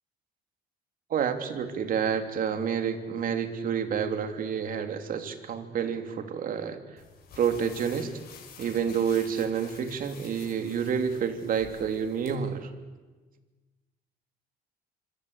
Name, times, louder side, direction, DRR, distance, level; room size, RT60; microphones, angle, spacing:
voice 1, 1.1-6.8 7.4-8.1 8.6-12.7, right 7 dB, 55° right, 7 dB, 3.2 m, -29 dB
sound 1, 7.0-12.3, left 7 dB, 65° left, 6.1 m, -50 dB
27.5 x 24.5 x 8.4 m, 1.3 s
cardioid pair, 110°, 17 cm